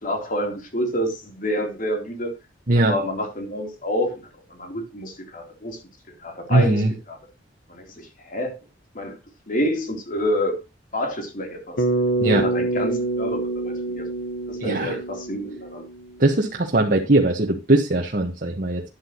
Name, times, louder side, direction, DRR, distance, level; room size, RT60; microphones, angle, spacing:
voice 1, 0.0-2.3 2.8-5.8 6.2-7.2 7.7-8.6 8.9-9.1 9.5-10.6 10.9-11.8 12.3-14.1 14.5-15.8, equal, 45° left, 3 dB, 3.6 m, -28 dB
voice 2, 2.7-3.0 6.5-6.9 12.2-12.4 14.6-15.0 16.2-18.8, right 2 dB, 45° right, 0 dB, 1.4 m, -20 dB
Bass guitar, 11.8-16.1, right 2 dB, 60° left, 1.2 m, -26 dB
12.0 x 10.5 x 3.1 m, 0.25 s
head